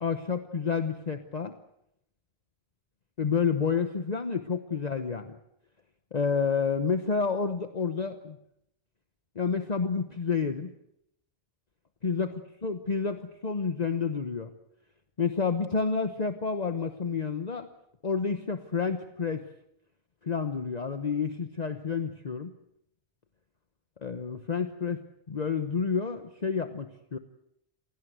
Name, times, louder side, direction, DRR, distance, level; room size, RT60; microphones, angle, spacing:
voice 1, 0.0-1.5 3.2-5.4 6.1-8.4 9.3-10.7 12.0-12.3 12.6-14.5 15.2-17.7 18.0-19.4 20.2-22.5 24.0-25.0 25.3-27.2, left 5 dB, 40° left, 8 dB, 1.1 m, -29 dB
27.0 x 17.5 x 8.0 m, 0.77 s
omnidirectional pair, 1.1 m